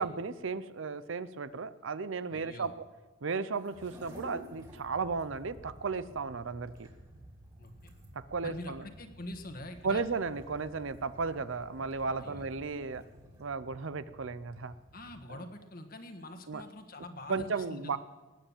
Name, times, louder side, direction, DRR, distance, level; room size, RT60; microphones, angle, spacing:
voice 1, 0.0-2.8 3.2-6.9 8.1-8.8 9.8-13.0 13.4-14.7 15.3-15.4 16.5-16.6 17.3-18.0, right 4 dB, 70° right, 15 dB, 0.6 m, -35 dB
voice 2, 2.3-2.7 7.6-7.9 8.4-10.0 12.2-12.5 14.9-18.0, left 1 dB, 45° left, 6 dB, 1.6 m, -45 dB
sound 1, 3.5-13.5, equal, 20° right, 2.8 m, -55 dB
sound 2, 4.5-15.3, equal, 90° right, 2.2 m, -54 dB
19.5 x 9.1 x 7.3 m, 1.2 s
head